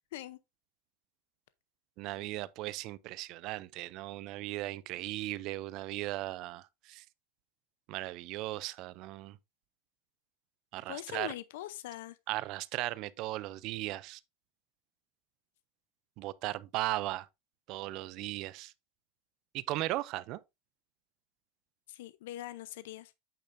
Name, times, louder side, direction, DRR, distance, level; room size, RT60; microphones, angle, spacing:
voice 1, 2.0-7.0 7.9-9.4 10.7-11.3 12.3-14.2 16.2-17.3 17.7-18.7 19.5-20.4, right 17 dB, 35° right, 0.4 m, -37 dB
voice 2, 10.9-12.2 21.9-23.1, left 14 dB, 70° left, 0.6 m, -42 dB
8.6 x 6.8 x 2.6 m
supercardioid pair, 175°, 0 cm